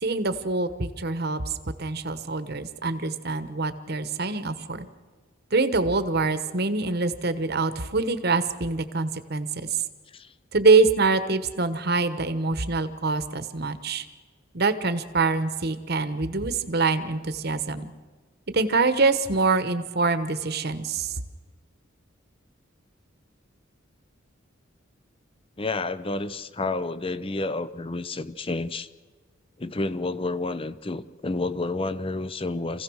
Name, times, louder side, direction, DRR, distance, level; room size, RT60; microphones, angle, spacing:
voice 1, 0.0-1.5 1.8-4.9 5.5-9.8 10.5-14.0 14.5-17.9 18.5-21.2, right 3 dB, 50° right, 11 dB, 1.2 m, -25 dB
voice 2, 25.6-28.9 29.6-32.8, left 2 dB, 25° left, 14 dB, 0.7 m, -30 dB
26.5 x 16.0 x 6.3 m, 1.4 s
head